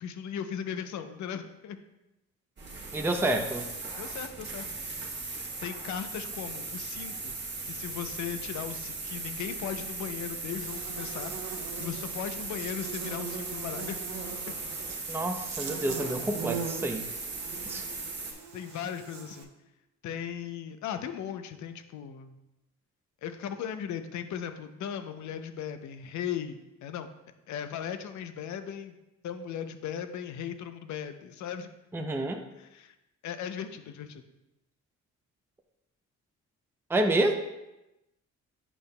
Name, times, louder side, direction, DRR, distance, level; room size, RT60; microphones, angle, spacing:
voice 1, 0.0-1.8 4.0-4.7 5.6-7.3 7.7-14.0 14.5-14.6 18.5-19.5 20.0-22.4 23.2-27.1 27.5-29.0 29.2-31.7 32.6-33.0 33.2-34.3, left 8 dB, 70° left, 9 dB, 0.6 m, -37 dB
sound 1, 2.6-18.3, right 3 dB, 35° right, 1.4 m, -38 dB
voice 2, 2.9-3.7 15.1-17.0 17.7-17.8 31.9-32.4 36.9-37.3, right 1 dB, 10° right, 4 dB, 0.5 m, -28 dB
Buzz, 10.4-19.4, right 6 dB, 65° right, 0.9 m, -41 dB
8.4 x 5.3 x 2.2 m, 0.94 s
cardioid pair, 90°, 30 cm